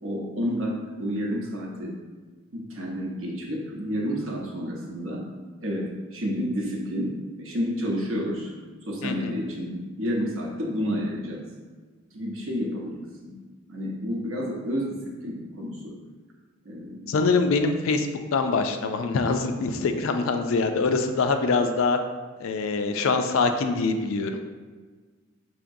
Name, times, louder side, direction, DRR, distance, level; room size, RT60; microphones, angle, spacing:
voice 1, 0.0-2.0 2.5-8.5 8.9-11.4 12.1-13.4 13.7-16.0 16.6-17.1, equal, 75° right, -2 dB, 0.9 m, -30 dB
voice 2, 9.0-9.3 17.1-22.0 22.4-24.3, left 4 dB, 75° left, 7 dB, 0.4 m, -24 dB
5.0 x 2.9 x 2.6 m, 1.4 s
head